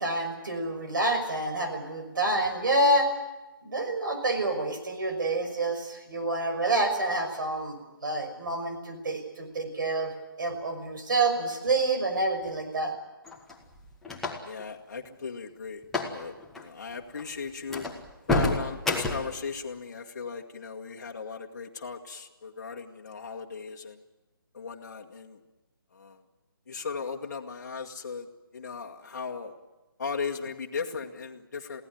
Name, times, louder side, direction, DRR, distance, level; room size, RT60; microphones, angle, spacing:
voice 1, 0.0-3.1 3.6-10.1 10.4-12.9, right 2 dB, 60° right, 6 dB, 5.9 m, -28 dB
sound 1, 13.3-14.6 15.8-16.2 16.4-16.6 17.2-17.3 17.7-19.4, left 2 dB, ahead, 1.5 m, -29 dB
voice 2, 14.4-15.8 16.1-17.9 18.3-24.0 24.5-25.4 25.9-26.2 26.7-28.3 28.5-29.5 30.0-31.8, left 5 dB, 45° left, 0 dB, 1.9 m, -37 dB
23.5 x 16.5 x 9.3 m, 1.1 s
hypercardioid pair, 170°, 12 cm